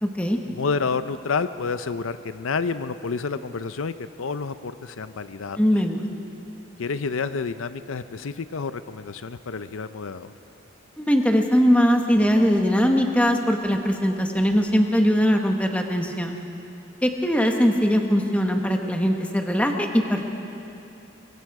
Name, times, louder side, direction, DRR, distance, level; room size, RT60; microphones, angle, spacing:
voice 1, 0.0-0.4 5.6-6.0 11.0-16.4 17.0-20.2, equal, 5° left, 3 dB, 1.3 m, -21 dB
voice 2, 0.5-5.6 6.8-10.3, left 4 dB, 85° left, 12 dB, 0.6 m, -29 dB
23.0 x 23.0 x 4.8 m, 2.7 s
head